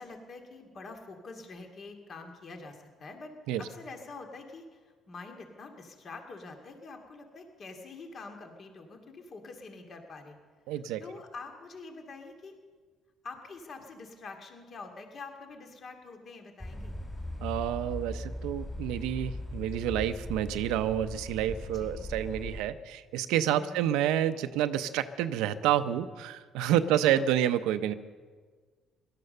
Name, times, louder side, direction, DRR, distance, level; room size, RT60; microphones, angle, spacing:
voice 1, 0.0-10.4 10.7-12.5 13.2-16.9 21.7-22.1 23.5-23.9 27.1-27.2, left 3 dB, 50° left, 4 dB, 2.3 m, -46 dB
voice 2, 10.7-11.0 17.4-27.9, right 11 dB, 85° right, 10 dB, 0.6 m, -29 dB
sound 1, 16.6-22.6, left 1 dB, 20° left, 3.6 m, -39 dB
17.5 x 12.0 x 6.7 m, 1.5 s
cardioid pair, 85°, 0 cm